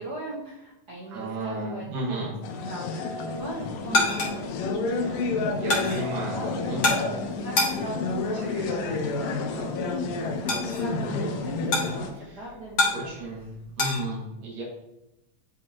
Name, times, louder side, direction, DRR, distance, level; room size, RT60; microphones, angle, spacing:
voice 1, 0.0-2.3 2.7-6.8 7.1-8.4 8.8-9.0 9.3-12.1 12.3-13.1, right 2 dB, 55° right, -5 dB, 1.1 m, -40 dB
voice 2, 1.1-2.3 5.5-6.4 6.7-7.1 8.4-8.9 12.1-12.5 12.9-14.6, right 1 dB, 85° right, -4 dB, 3.2 m, -34 dB
sound 1, 2.4-12.1, left 3 dB, 85° left, 2.4 m, -30 dB
sound 2, 3.3-14.0, left 2 dB, 40° left, 1.8 m, -30 dB
9.8 x 4.7 x 2.9 m, 0.92 s
omnidirectional pair, 3.7 m